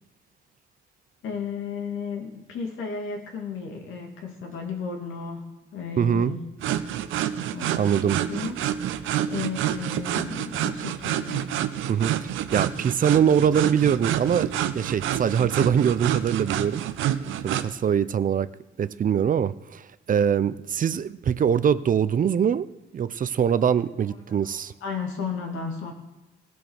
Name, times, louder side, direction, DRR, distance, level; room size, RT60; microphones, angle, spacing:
voice 1, 1.2-6.4 7.5-8.5 9.0-11.5 24.4-25.9, left 5 dB, 80° left, 2 dB, 2.4 m, -34 dB
voice 2, 6.0-6.3 7.8-8.2 11.9-16.8 17.4-18.5 18.8-22.7 22.9-24.7, right 8 dB, 45° right, 14 dB, 0.6 m, -23 dB
sound 1, 6.6-17.7, right 11 dB, 85° right, 0.7 m, -28 dB
16.5 x 6.2 x 6.4 m, 1.1 s
cardioid pair, 90°, 20 cm